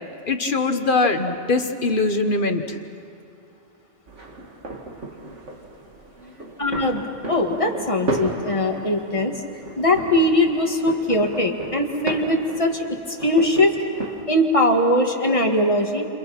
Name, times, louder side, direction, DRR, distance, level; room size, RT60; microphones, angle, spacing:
voice 1, 0.3-2.8, left 3 dB, 45° left, 6 dB, 1.4 m, -22 dB
sound 1, 4.1-14.2, right 2 dB, 75° right, 2.6 m, -34 dB
voice 2, 6.6-7.0 7.3-9.4 9.8-13.8 14.3-16.1, left 1 dB, 25° left, 2 dB, 2.1 m, -21 dB
29.0 x 28.5 x 5.9 m, 2.4 s
omnidirectional pair, 1.2 m